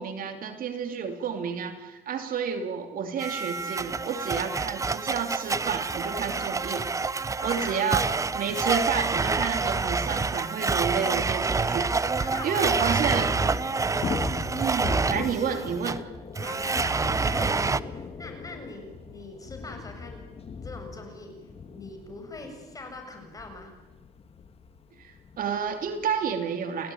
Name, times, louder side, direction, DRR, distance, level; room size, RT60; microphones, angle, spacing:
voice 1, 0.0-6.9 7.4-12.2 12.4-13.3 14.5-16.0 25.0-26.9, right 6 dB, 55° right, 6 dB, 3.0 m, -30 dB
Domestic sounds home sounds, 3.2-17.8, right 4 dB, 20° right, 0.7 m, -27 dB
voice 2, 7.4-8.0 12.2-13.4 13.8-14.1 16.4-20.2 20.6-21.4 21.7-23.7, left 2 dB, 20° left, 4 dB, 7.1 m, -42 dB
Thunder / Rain, 10.5-26.3, left 5 dB, 35° left, 2.2 m, -40 dB
29.5 x 17.5 x 9.3 m, 1.1 s
cardioid pair, 110°, 17 cm